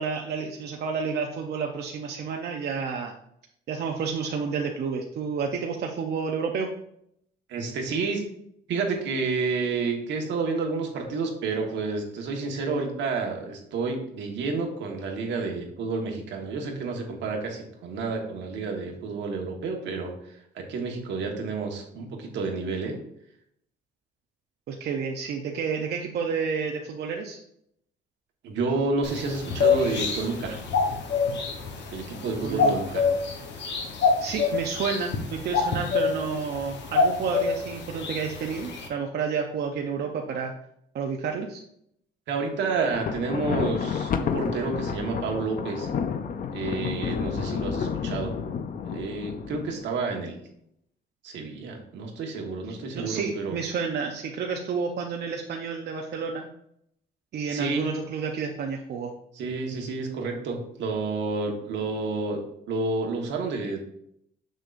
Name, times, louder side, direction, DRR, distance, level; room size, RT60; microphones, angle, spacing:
voice 1, 0.0-3.1 3.7-6.7 24.7-27.4 32.4-32.8 34.2-40.5 40.9-41.6 52.9-56.5 57.3-59.1, right 5 dB, 65° right, 2 dB, 0.7 m, -30 dB
voice 2, 7.5-8.2 8.7-22.9 28.4-30.6 31.9-33.1 42.3-45.9 46.5-48.3 48.8-50.4 51.2-53.5 57.5-57.9 59.3-62.4 62.7-63.8, right 4 dB, 85° right, 1 dB, 1.4 m, -30 dB
sound 1, 29.0-38.9, left 5 dB, 80° left, 1.1 m, -27 dB
Thunder, 42.7-50.0, left 6 dB, 50° left, 0.5 m, -30 dB
6.6 x 6.3 x 2.5 m, 0.74 s
cardioid pair, 110°, 18 cm